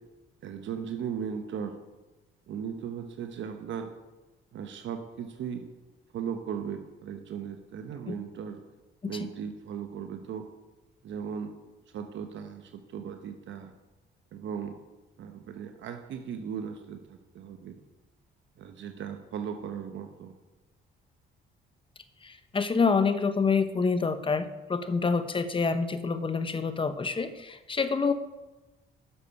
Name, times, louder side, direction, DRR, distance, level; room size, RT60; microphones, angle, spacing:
voice 1, 0.4-1.8 2.5-3.9 4.5-5.7 6.1-8.6 9.1-10.5 11.0-11.6 11.9-13.7 14.3-14.8 15.2-17.8 18.6-20.4, right 7 dB, 70° right, 6 dB, 0.9 m, -37 dB
voice 2, 22.2-28.1, left 4 dB, 25° left, 11 dB, 0.9 m, -27 dB
9.9 x 6.7 x 5.6 m, 1.1 s
cardioid pair, 90°, 20 cm